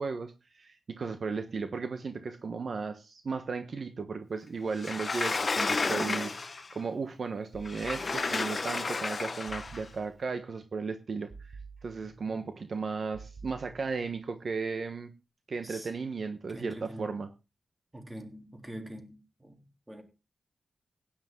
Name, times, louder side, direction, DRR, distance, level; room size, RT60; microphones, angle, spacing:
voice 1, 0.0-15.1 15.5-17.3, right 4 dB, 55° right, 1.1 m, -35 dB
Sliding door, 4.8-6.7 7.7-9.8, left 3 dB, 40° left, 1.2 m, -32 dB
sound 1, 7.5-8.6 9.5-10.4 11.3-12.4 13.1-14.2, right 4 dB, 35° right, 3.6 m, -50 dB
voice 2, 12.0-12.4 15.6-15.9 16.5-17.2 17.9-20.0, right 1 dB, 15° right, 3.3 m, -45 dB
16.5 x 10.5 x 3.8 m
wide cardioid pair, 90°, 0 cm